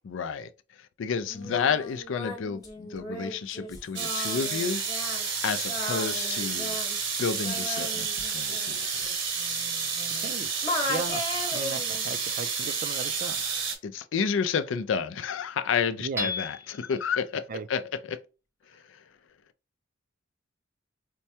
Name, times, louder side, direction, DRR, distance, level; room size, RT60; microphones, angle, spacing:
voice 1, 0.0-0.5 1.0-5.2 5.4-6.8 7.2-9.1 13.8-17.8 18.1-18.2 18.7-19.0, left 6 dB, 70° left, 0.4 m, -30 dB
Singing, 1.3-10.3 10.6-12.0, left 2 dB, 20° left, 1.0 m, -37 dB
sound 1, 4.0-13.8, right 5 dB, 65° right, 0.9 m, -30 dB
voice 2, 10.2-10.5 10.8-13.4 16.0-16.3 17.5-17.7, right 4 dB, 45° right, 0.4 m, -37 dB
Hammer / Chink clink, 16.2-17.0, left 3 dB, 10° right, 0.7 m, -33 dB
4.4 x 2.2 x 2.7 m
head